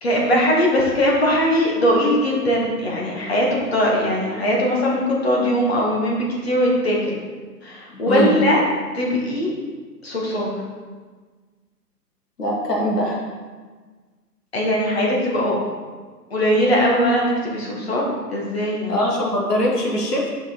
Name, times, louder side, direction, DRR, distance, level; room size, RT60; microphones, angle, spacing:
voice 1, 0.0-7.2 7.6-8.6 8.9-9.5 10.0-10.5 14.5-15.6 16.3-18.0 18.3-19.0, equal, 40° left, -3 dB, 1.6 m, -20 dB
voice 2, 7.9-8.4 12.4-13.2 18.9-20.3, equal, 70° left, -2 dB, 2.1 m, -22 dB
5.8 x 5.3 x 4.4 m, 1.4 s
hypercardioid pair, 175°, 49 cm